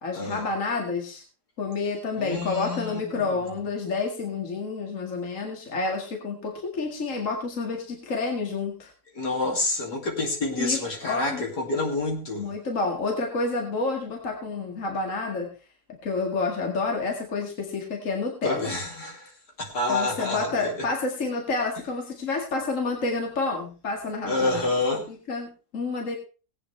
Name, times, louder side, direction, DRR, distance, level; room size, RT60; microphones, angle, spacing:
voice 1, 0.0-1.2 1.6-8.9 10.6-11.5 12.3-15.5 16.0-18.7 19.9-24.7 25.1-26.1, left 3 dB, 40° left, 1 dB, 2.2 m, -29 dB
voice 2, 2.2-3.3 9.1-12.5 18.4-19.3 19.6-20.7 24.3-25.0, left 2 dB, 60° left, 1 dB, 3.0 m, -28 dB
19.0 x 8.6 x 3.3 m, 0.34 s
omnidirectional pair, 2.0 m